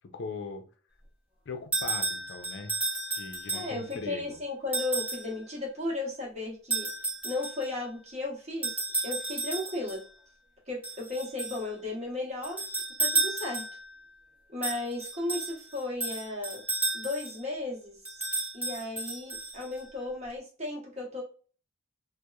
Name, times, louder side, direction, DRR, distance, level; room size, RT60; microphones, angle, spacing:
voice 1, 0.1-0.6 1.5-2.7 3.1-4.4, left 4 dB, 60° left, 6 dB, 0.4 m, -40 dB
sound 1, 1.7-4.0 4.7-5.3 6.7-7.7 8.6-10.0 10.8-11.7 12.4-13.9 14.6-17.4 18.1-19.8, right 3 dB, 5° right, 0.6 m, -32 dB
voice 2, 3.5-6.9 7.2-8.7 9.0-10.0 10.7-12.7 13.0-13.6 14.5-16.6 16.9-18.0 18.5-21.2, left 2 dB, 35° right, -2 dB, 0.9 m, -35 dB
2.8 x 2.1 x 2.3 m, 0.39 s
head